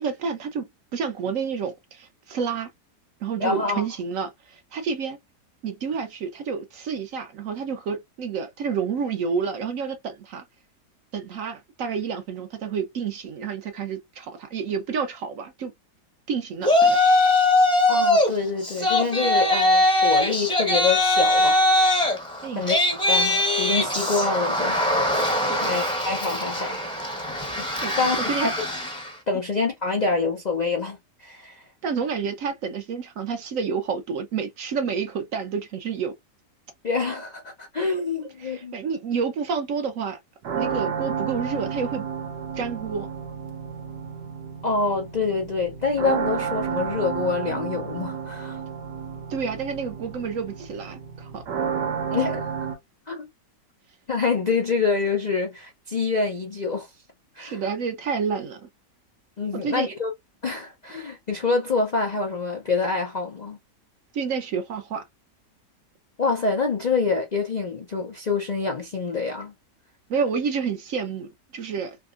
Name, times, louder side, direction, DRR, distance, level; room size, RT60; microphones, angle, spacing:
voice 1, 0.0-2.7 3.2-5.2 5.6-10.4 11.1-15.7 16.3-17.0 22.4-22.7 25.4-25.8 27.8-27.9 28.3-28.5 31.8-36.1 38.4-40.2 40.5-42.1 42.5-43.1 49.3-51.4 57.4-58.7 59.5-59.9 64.1-65.0 70.1-72.0, right 6 dB, 65° right, 0.9 m, -29 dB
voice 2, 3.4-3.8 17.9-21.6 22.5-24.8 25.6-26.8 27.6-27.7 28.0-28.5 29.3-31.6 36.8-38.7 44.6-48.6 52.1-52.7 53.1-53.3 54.1-56.9 57.4-57.6 59.4-60.1 60.4-63.6 66.2-69.5, left 4 dB, 85° left, 0.3 m, -26 dB
Yell, 16.6-18.3 18.6-29.1, left 1 dB, 5° left, 0.5 m, -21 dB
sound 1, 40.4-52.8, right 7 dB, 85° right, 1.6 m, -31 dB
3.5 x 2.8 x 2.4 m
omnidirectional pair, 1.8 m